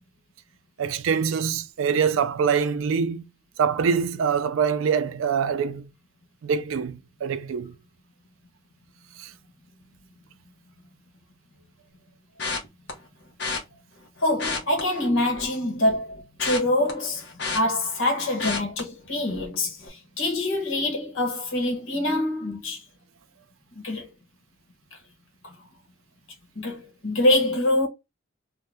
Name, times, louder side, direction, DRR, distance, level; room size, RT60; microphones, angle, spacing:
voice 1, 0.8-3.2 3.6-5.9 6.4-7.7, right 6 dB, 80° right, 0.4 m, -24 dB
sound 1, 12.4-12.9 13.4-13.6 14.3-15.5 15.9-18.1 18.4-18.8 19.3-19.5 19.8-19.9, left 4 dB, 55° left, 0.9 m, -31 dB
voice 2, 14.2-22.8 23.7-24.1 25.4-25.5 26.5-27.9, left 1 dB, 75° left, 1.1 m, -25 dB
2.7 x 2.2 x 3.2 m
head